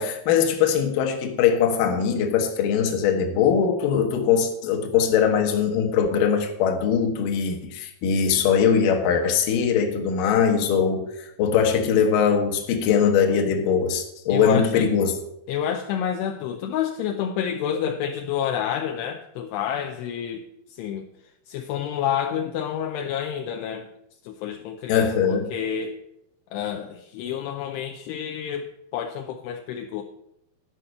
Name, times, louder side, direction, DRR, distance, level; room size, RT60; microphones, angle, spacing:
voice 1, 0.0-15.1 24.9-25.5, left 7 dB, 65° left, 2.2 m, -21 dB
voice 2, 14.3-14.9 15.5-21.1 21.5-23.9 24.2-26.0 26.5-30.0, left 9 dB, 85° left, 2.4 m, -29 dB
11.0 x 5.8 x 7.8 m
omnidirectional pair, 5.6 m